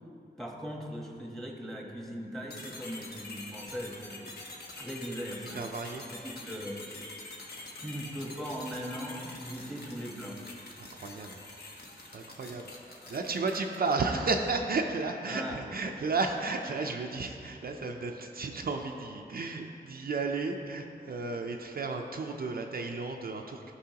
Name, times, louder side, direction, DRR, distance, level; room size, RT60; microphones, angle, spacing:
voice 1, 0.4-4.3 4.8-5.6 6.0-6.8 7.8-10.4 15.3-15.6, equal, ahead, 0 dB, 1.1 m, -39 dB
sound 1, 2.5-14.1, left 2 dB, 65° left, 1.2 m, -46 dB
voice 2, 5.5-6.0 7.3-7.6 10.8-11.4 12.1-23.7, right 3 dB, 60° right, 3 dB, 0.5 m, -33 dB
14.0 x 5.4 x 2.9 m, 2.7 s
wide cardioid pair, 100°, 18 cm